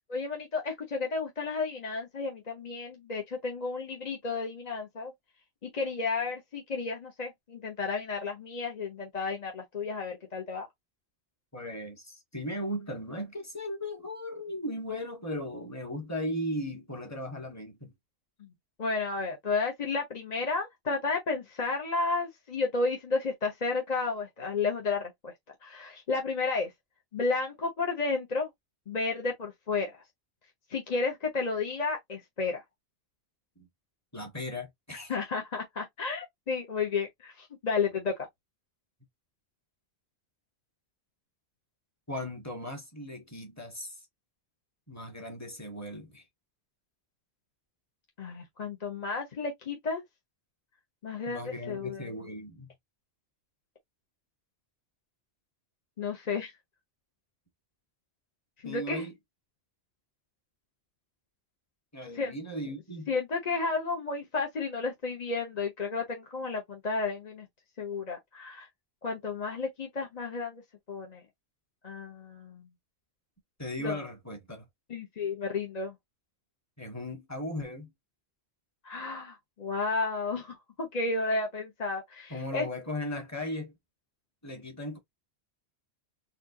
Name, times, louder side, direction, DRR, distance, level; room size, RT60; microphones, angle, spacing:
voice 1, 0.1-5.1 5.6-10.7 18.8-25.3 25.6-26.7 27.1-28.5 28.9-30.0 30.7-32.6 35.1-38.3 48.2-50.0 51.0-52.1 56.0-56.5 58.6-59.0 62.1-62.3 63.1-67.5 67.8-68.7 69.0-70.6 70.9-71.2 71.8-72.6 73.8-74.0 74.9-75.9 78.8-82.7, left 4 dB, 40° left, 0.9 m, -32 dB
voice 2, 11.5-17.9 33.6-33.7 34.1-35.2 42.1-43.9 44.9-46.2 51.3-52.7 58.6-59.1 61.9-63.1 73.6-74.7 76.8-77.9 82.3-83.7 84.4-85.0, left 1 dB, 15° left, 1.4 m, -37 dB
4.3 x 2.4 x 2.6 m
omnidirectional pair, 1.1 m